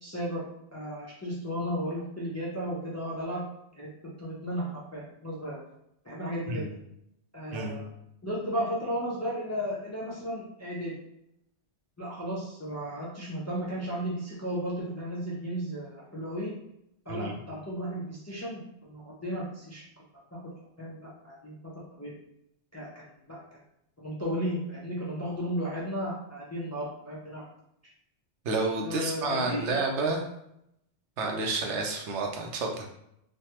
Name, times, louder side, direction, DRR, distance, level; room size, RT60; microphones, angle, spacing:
voice 1, 0.0-0.4 0.7-3.4 3.8-3.9 4.2-5.6 6.0-6.6 7.3-7.9 8.2-10.9 12.0-16.5 17.1-19.8 20.3-20.4 20.8-21.6 22.0-22.1 22.7-23.0 23.3-23.4 24.0-27.4 28.8-29.8, equal, 20° left, -6 dB, 0.4 m, -34 dB
voice 2, 7.5-7.8 17.1-17.4 28.4-30.2 31.2-32.9, right 3 dB, 75° right, 1 dB, 0.9 m, -30 dB
3.2 x 2.2 x 2.8 m, 0.78 s
omnidirectional pair, 1.2 m